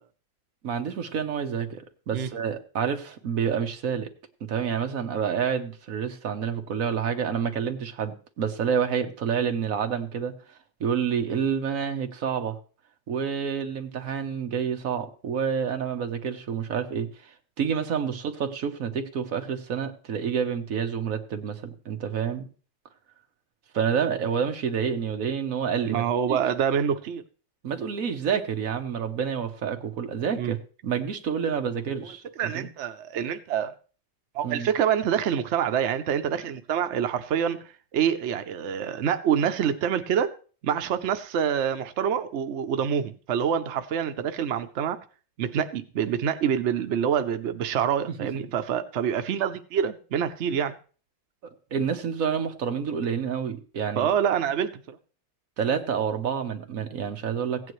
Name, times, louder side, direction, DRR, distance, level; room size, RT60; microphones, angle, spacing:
voice 1, 0.6-4.1 4.4-10.3 10.8-12.6 13.1-17.3 17.6-22.5 23.7-26.0 26.3-26.4 27.6-30.6 30.8-32.2 32.5-32.7 34.4-34.7 48.1-48.3 51.7-54.1 55.6-57.6, right 7 dB, 50° right, 1.3 m, -28 dB
voice 2, 25.9-27.2 30.4-30.5 32.4-33.7 34.3-37.6 37.9-40.3 40.6-45.0 45.4-50.7 54.0-54.7, right 8 dB, 75° right, 0.6 m, -26 dB
15.5 x 9.4 x 3.1 m
omnidirectional pair, 2.1 m